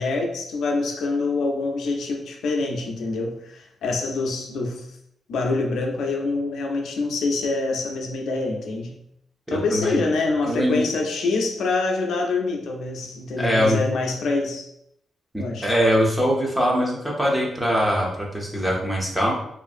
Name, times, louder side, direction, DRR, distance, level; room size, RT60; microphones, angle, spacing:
voice 1, 0.0-4.9 5.3-8.9 9.5-14.7 15.4-15.7, left 3 dB, 75° left, 2 dB, 0.4 m, -25 dB
voice 2, 9.5-10.0 10.4-10.8 13.4-13.8 15.3-19.3, equal, 5° right, -3 dB, 0.5 m, -22 dB
2.6 x 2.4 x 2.4 m, 0.76 s
wide cardioid pair, 155°, 0 cm